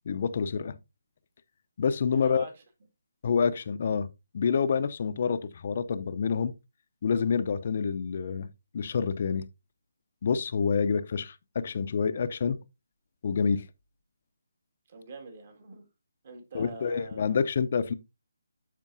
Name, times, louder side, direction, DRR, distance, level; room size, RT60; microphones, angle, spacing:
voice 1, 0.1-0.8 1.8-2.4 3.2-4.1 4.3-6.5 7.0-8.5 8.7-9.4 10.2-12.6 13.2-13.6 16.5-17.9, left 6 dB, 45° left, 0.7 m, -27 dB
voice 2, 2.1-2.6 14.9-15.9 16.2-17.4, right 3 dB, 45° right, 2.2 m, -45 dB
12.5 x 4.5 x 2.7 m
figure-of-eight pair, 155°, 0 cm